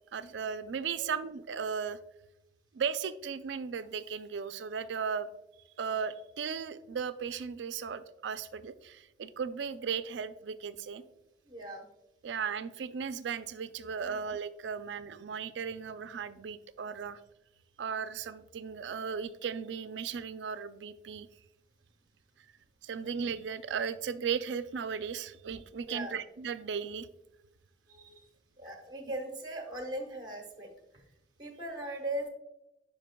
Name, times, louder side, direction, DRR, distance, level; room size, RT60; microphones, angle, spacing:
voice 1, 0.1-2.0 2.7-5.3 5.8-11.0 12.2-17.2 17.8-21.3 22.8-27.1, right 6 dB, 70° right, 13 dB, 0.4 m, -36 dB
voice 2, 11.4-11.9 14.0-14.2 25.9-26.2 27.9-28.3 28.6-31.1 31.4-32.3, right 1 dB, 25° right, 3 dB, 1.0 m, -39 dB
10.0 x 5.2 x 2.2 m, 0.91 s
head